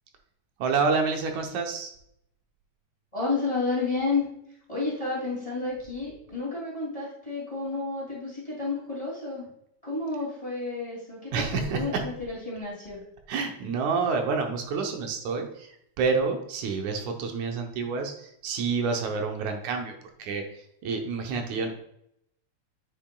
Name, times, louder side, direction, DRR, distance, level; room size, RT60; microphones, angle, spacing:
voice 1, 0.6-1.9 11.3-11.8 13.3-15.7 16.0-21.8, right 4 dB, 80° right, 4 dB, 2.2 m, -28 dB
voice 2, 3.1-4.3 4.7-9.5 9.8-13.0, left 3 dB, 15° left, -5 dB, 2.0 m, -31 dB
8.3 x 6.1 x 2.2 m, 0.75 s
omnidirectional pair, 3.3 m